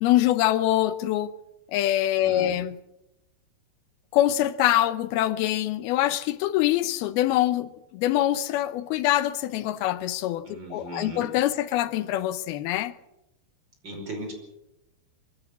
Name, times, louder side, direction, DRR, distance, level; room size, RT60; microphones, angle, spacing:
voice 1, 0.0-1.3 1.7-2.8 4.1-13.0, left 13 dB, 75° left, 2.5 m, -24 dB
voice 2, 2.2-2.6 10.5-11.3 13.8-14.3, right 1 dB, 25° right, 5.5 m, -37 dB
23.5 x 14.0 x 8.4 m
omnidirectional pair, 5.0 m